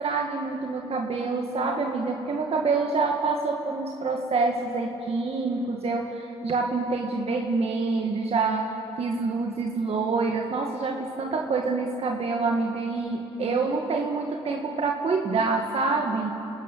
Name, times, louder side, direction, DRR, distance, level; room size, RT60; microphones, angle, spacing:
voice 1, 0.0-16.3, right 4 dB, 65° right, 1 dB, 1.9 m, -27 dB
29.5 x 13.5 x 9.2 m, 3.0 s
cardioid pair, 60°, 11 cm